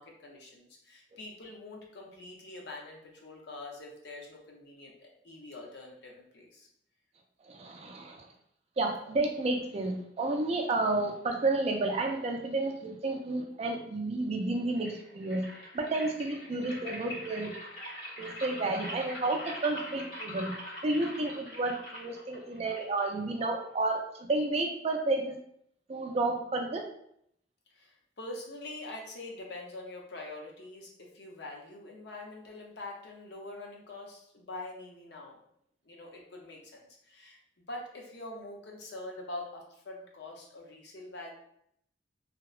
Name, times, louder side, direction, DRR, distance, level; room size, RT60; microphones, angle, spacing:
voice 1, 0.0-6.7 27.7-35.4 35.8-41.3, left 2 dB, 65° left, 0 dB, 0.6 m, -45 dB
voice 2, 7.5-8.3 8.8-15.5 15.7-17.5 18.2-20.5 20.8-24.0 24.3-25.4 25.9-26.9, right 2 dB, 35° right, 3 dB, 0.3 m, -31 dB
sound 1, 14.7-23.7, left 1 dB, 80° left, 1.5 m, -43 dB
2.7 x 2.0 x 2.3 m, 0.70 s
head